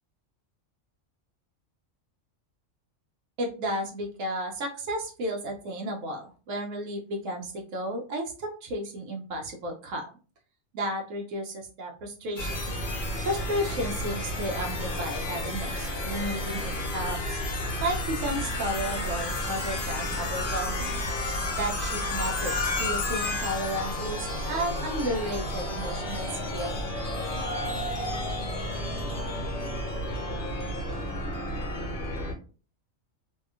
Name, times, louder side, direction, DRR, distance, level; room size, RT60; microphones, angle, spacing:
voice 1, 3.4-10.1 10.7-12.6 13.2-17.4 17.8-21.0 21.5-26.8, equal, 80° right, 1 dB, 1.0 m, -33 dB
sound 1, 12.4-32.3, left 1 dB, 45° left, 0.9 m, -31 dB
2.7 x 2.3 x 2.3 m, 0.38 s
omnidirectional pair, 1.4 m